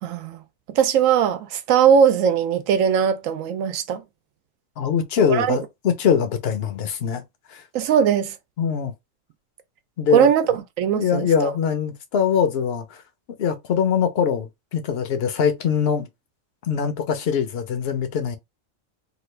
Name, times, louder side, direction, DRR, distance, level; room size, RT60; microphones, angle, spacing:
voice 1, 0.0-0.4 0.7-4.0 5.3-5.6 7.7-8.3 10.1-11.5, right 8 dB, 80° right, 1.0 m, -20 dB
voice 2, 4.8-7.2 7.5-7.6 8.6-8.9 10.0-10.3 10.9-13.0 13.4-16.1 16.7-18.4, left 7 dB, 60° left, 0.8 m, -22 dB
3.0 x 2.4 x 3.1 m
omnidirectional pair, 1.4 m